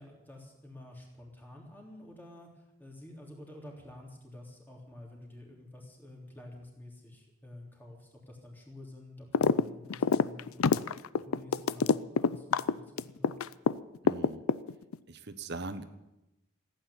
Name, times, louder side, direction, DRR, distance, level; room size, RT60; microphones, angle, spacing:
voice 1, 0.0-10.8 11.2-13.4, left 1 dB, 10° left, -1 dB, 3.3 m, -49 dB
sound 1, 9.3-9.6 9.9-13.7 14.1-14.9, left 5 dB, 80° left, 0.5 m, -25 dB
voice 2, 14.0-14.5 15.1-15.9, right 3 dB, 55° right, 10 dB, 1.2 m, -40 dB
16.0 x 9.1 x 9.8 m, 0.92 s
head